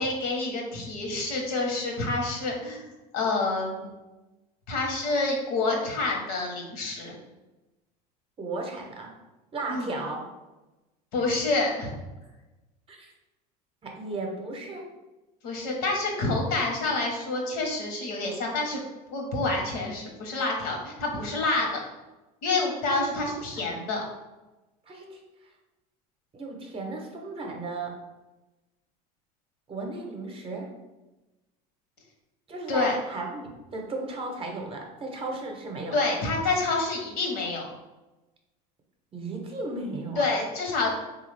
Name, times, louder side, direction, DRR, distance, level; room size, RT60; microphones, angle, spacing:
voice 1, 0.0-2.9 3.1-3.9 4.7-7.1 9.7-9.9 11.1-11.9 15.4-18.8 19.1-21.8 22.4-24.0 32.7-32.9 35.9-37.7 40.2-40.9, left 3 dB, 70° left, 1 dB, 1.0 m, -28 dB
voice 2, 8.4-9.1 9.5-10.3 12.9-13.1 13.8-14.8 22.9-23.9 24.9-25.2 26.3-28.0 29.7-30.7 32.5-36.0 39.1-40.3, right 2 dB, 30° right, 1 dB, 0.7 m, -35 dB
3.4 x 2.4 x 3.2 m, 1.1 s
supercardioid pair, 100°, 19 cm